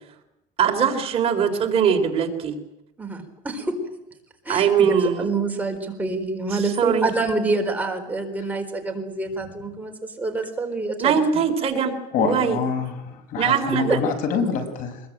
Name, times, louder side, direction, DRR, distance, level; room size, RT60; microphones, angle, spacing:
voice 1, 0.6-2.5 4.5-5.3 6.5-7.1 11.0-12.6 13.4-14.0, right 7 dB, 40° right, 4 dB, 3.8 m, -21 dB
voice 2, 3.0-3.8 4.4-11.1, right 3 dB, 10° right, 3 dB, 4.3 m, -27 dB
voice 3, 12.1-15.0, left 6 dB, 60° left, 8 dB, 6.0 m, -26 dB
24.5 x 22.0 x 9.1 m, 0.89 s
cardioid pair, 145°, 15 cm